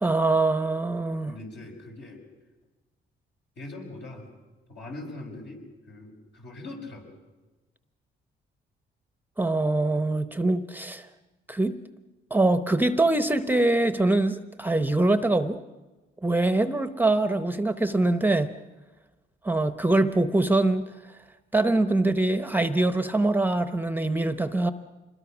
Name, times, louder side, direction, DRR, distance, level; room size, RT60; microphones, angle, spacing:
voice 1, 0.0-1.3 9.4-11.1 11.5-11.8 12.3-15.6 16.2-18.5 19.4-20.9 21.5-24.7, right 2 dB, 10° right, 10 dB, 0.9 m, -23 dB
voice 2, 1.3-2.2 3.6-4.3 4.7-7.2 10.0-10.1, left 2 dB, 60° left, 1 dB, 5.7 m, -41 dB
26.0 x 21.5 x 6.2 m, 1.2 s
cardioid pair, 90°, 20 cm